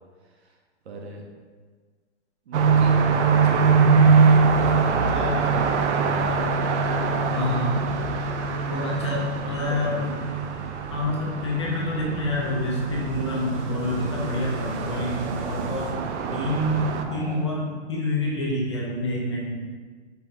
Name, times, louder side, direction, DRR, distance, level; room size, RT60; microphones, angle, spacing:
voice 1, 0.2-0.6 0.8-1.3 2.4-6.8 9.4-10.2 17.0-17.4, right 3 dB, 70° right, 1 dB, 0.9 m, -39 dB
sound 1, 2.5-17.0, right 5 dB, 85° right, 0.5 m, -23 dB
voice 2, 5.1-5.6 7.3-7.9 8.7-10.2 10.9-16.0 16.3-19.6, left 1 dB, 25° left, -4 dB, 0.4 m, -27 dB
sound 2, 7.2-15.9, left 1 dB, 30° right, 1.4 m, -44 dB
5.4 x 3.3 x 2.7 m, 1.5 s
hypercardioid pair, 170°, 34 cm